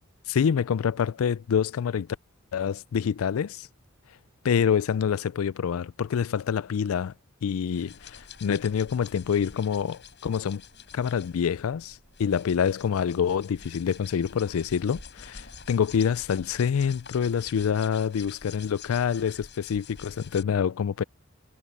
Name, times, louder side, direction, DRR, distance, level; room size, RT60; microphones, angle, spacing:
voice 1, 0.3-2.1 2.5-3.7 4.4-7.1 7.4-10.6 10.9-21.0, left 7 dB, 90° left, 0.4 m, -26 dB
sound 1, 7.7-20.4, left 6 dB, 60° left, 7.3 m, -47 dB
head